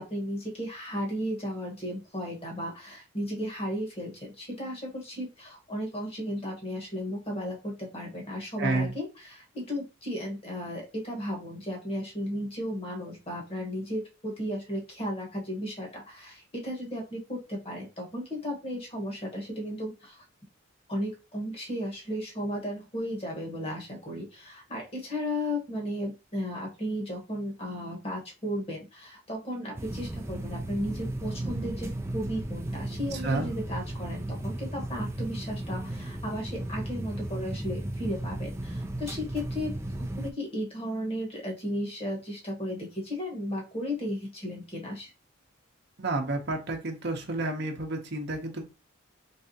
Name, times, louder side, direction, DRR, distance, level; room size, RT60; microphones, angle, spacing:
voice 1, 0.0-20.2 20.9-39.7 40.2-45.1, equal, 30° left, 0 dB, 1.3 m, -35 dB
voice 2, 8.6-8.9 33.2-33.5 46.0-48.7, right 2 dB, 55° right, 3 dB, 0.8 m, -30 dB
sound 1, 29.7-40.3, right 1 dB, 15° right, 0.4 m, -35 dB
3.3 x 3.3 x 2.8 m, 0.28 s
head